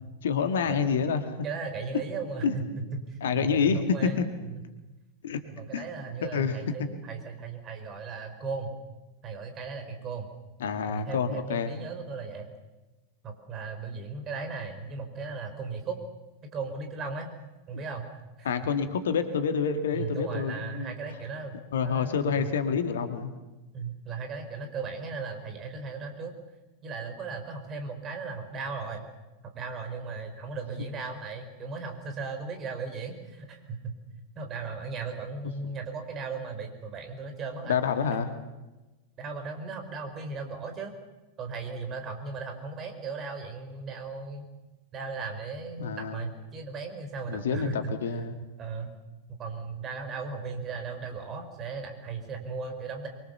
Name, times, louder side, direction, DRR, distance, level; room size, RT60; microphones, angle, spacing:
voice 1, 0.2-1.3 2.4-2.5 3.2-4.3 5.2-5.4 5.7-5.9 6.2-6.6 10.6-11.7 18.4-21.0 21.7-23.3 37.7-38.3 45.8-46.2 47.3-48.4, left 6 dB, 60° left, 8 dB, 2.0 m, -28 dB
voice 2, 1.4-4.6 5.6-8.7 9.2-10.3 10.9-12.5 13.2-16.0 16.4-17.3 17.7-18.1 18.4-18.5 19.9-22.5 23.7-26.3 26.8-29.0 29.5-34.0 34.3-37.8 39.2-40.9 41.4-44.5 44.9-47.9 48.6-49.0 49.4-53.1, right 4 dB, 30° right, 6 dB, 4.7 m, -37 dB
25.0 x 23.0 x 7.1 m, 1.1 s
figure-of-eight pair, 90°, 0 cm